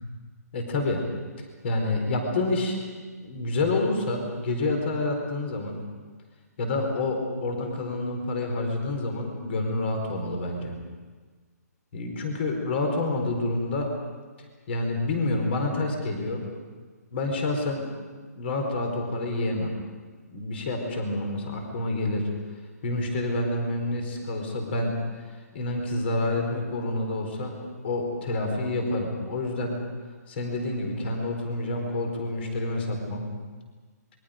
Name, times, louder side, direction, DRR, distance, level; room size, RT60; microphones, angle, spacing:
voice 1, 0.5-1.0 1.4-2.8 3.2-5.8 6.6-10.8 11.9-13.9 14.7-16.4 17.1-17.8 18.3-19.7 20.3-22.3 22.8-25.3 25.5-27.5 27.8-29.8 30.3-33.3, left 2 dB, 40° left, 3 dB, 4.3 m, -28 dB
27.0 x 22.5 x 5.1 m, 1.4 s
hypercardioid pair, 165°, 9 cm